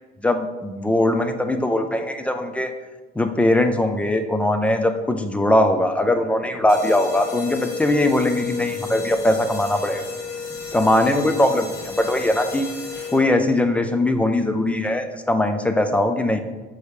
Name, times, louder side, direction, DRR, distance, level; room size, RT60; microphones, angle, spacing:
voice 1, 0.2-2.7 3.2-10.0 10.7-12.7 13.1-16.4, left 1 dB, 5° left, 7 dB, 0.4 m, -20 dB
sound 1, 6.7-13.5, left 5 dB, 55° left, 1.4 m, -32 dB
5.4 x 5.0 x 4.7 m, 1.2 s
cardioid pair, 165°, 21 cm